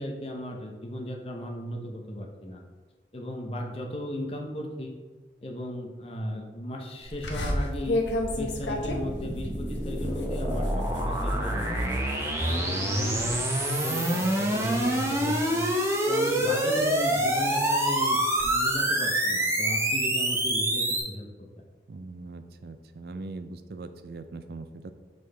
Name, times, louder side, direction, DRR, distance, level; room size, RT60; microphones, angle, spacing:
voice 1, 0.0-2.6 3.1-4.9 5.4-8.1 8.4-11.9 12.4-13.4 13.8-15.7 16.1-21.3, equal, 30° left, 1 dB, 0.7 m, -36 dB
sound 1, 7.1-21.0, right 1 dB, 15° right, 0.7 m, -27 dB
sound 2, 7.2-12.6 13.0-13.4 13.7-15.8 16.3-18.5, left 1 dB, 85° left, 0.8 m, -34 dB
voice 2, 13.0-13.5 21.9-24.9, right 3 dB, 60° right, 10 dB, 0.4 m, -41 dB
5.9 x 5.3 x 3.4 m, 1.4 s
head